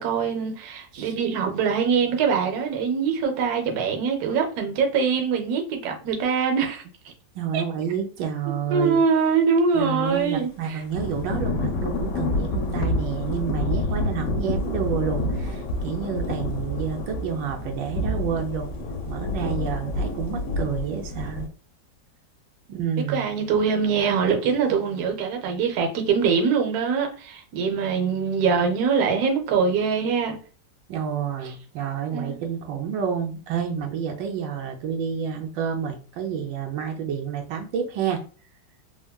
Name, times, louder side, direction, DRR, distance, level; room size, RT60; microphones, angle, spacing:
voice 1, 0.0-6.8 7.5-7.6 8.7-10.8 23.1-30.4 32.1-32.4, right 5 dB, 65° right, 1.1 m, -23 dB
voice 2, 7.3-9.0 9.7-18.7 19.1-21.4 22.7-23.3 30.9-38.2, right 7 dB, 85° right, 1.3 m, -29 dB
Thunder / Rain, 10.9-21.5, left 2 dB, 75° left, 1.1 m, -28 dB
3.6 x 2.2 x 2.2 m
omnidirectional pair, 2.0 m